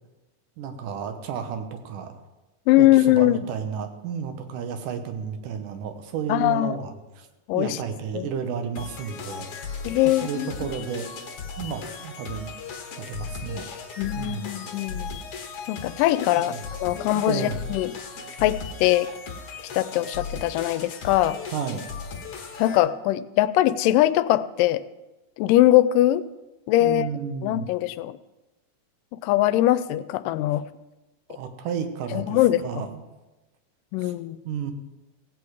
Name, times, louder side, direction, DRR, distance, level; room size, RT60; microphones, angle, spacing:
voice 1, 0.6-2.2 2.8-7.3 7.5-9.5 10.1-11.2 11.6-12.5 13.0-13.7 14.2-14.5 16.4-16.6 17.1-17.6 21.5-21.9 26.8-27.7 31.3-33.0 34.0-34.1 34.4-34.7, right 7 dB, 75° right, 7 dB, 2.5 m, -32 dB
voice 2, 2.7-3.4 6.3-6.7 7.5-7.8 8.2-8.3 9.8-10.5 14.0-15.1 15.7-17.9 18.4-19.1 19.7-21.4 22.6-24.8 25.4-26.2 26.7-27.1 27.4-28.2 29.1-30.6 32.1-32.8 33.9-34.4, left 15 dB, 90° left, 15 dB, 2.2 m, -21 dB
sound 1, 8.8-22.8, left 5 dB, 55° left, 1.9 m, -37 dB
16.5 x 8.5 x 4.8 m, 1.1 s
omnidirectional pair, 3.8 m